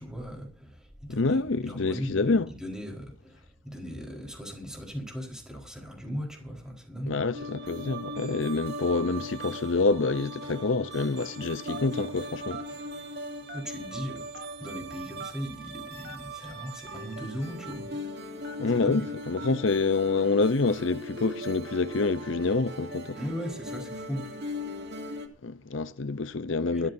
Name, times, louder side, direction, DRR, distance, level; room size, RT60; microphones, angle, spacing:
voice 1, 0.0-7.2 13.5-17.9 18.7-19.1 23.2-24.3 26.7-26.9, equal, 5° right, 4.4 m, -38 dB
voice 2, 1.1-2.5 7.1-12.6 18.6-23.2 25.4-26.9, left 3 dB, 70° left, 0.7 m, -27 dB
sound 1, 7.3-25.3, equal, 55° right, 2.6 m, -39 dB
Telephone, 11.7-12.0 12.5-12.7 13.5-13.9 14.3-14.5 15.2-15.4 16.0-16.2 16.8-17.0 17.6-17.7 18.4-18.7 19.4-19.6, right 4 dB, 70° right, 2.4 m, -42 dB
24.5 x 13.5 x 2.7 m
head